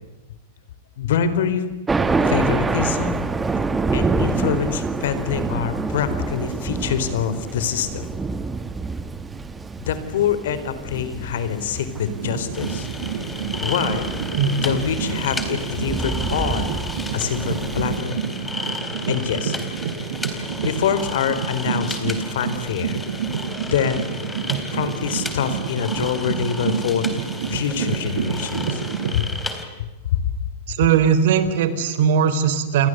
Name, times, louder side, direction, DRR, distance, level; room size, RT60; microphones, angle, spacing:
voice 1, 1.0-1.6 2.2-3.3 3.9-8.1 9.8-12.9 13.6-14.1 14.6-16.7 17.1-18.2 19.1-19.6 20.3-23.0 23.7-24.1 24.7-27.1 27.5-28.8 29.1-29.3 30.2-30.3, left 8 dB, 75° left, 12 dB, 4.3 m, -25 dB
Thunder, 1.9-18.0, right 4 dB, 10° right, 1.6 m, -27 dB
sound 1, 12.0-29.2, right 7 dB, 85° right, 5.9 m, -29 dB
sound 2, 12.5-29.6, left 2 dB, 10° left, 3.8 m, -33 dB
voice 2, 14.4-14.8 24.5-24.6 30.7-32.9, right 7 dB, 70° right, 12 dB, 4.0 m, -19 dB
29.5 x 21.5 x 8.1 m, 1.1 s
supercardioid pair, 145°, 0 cm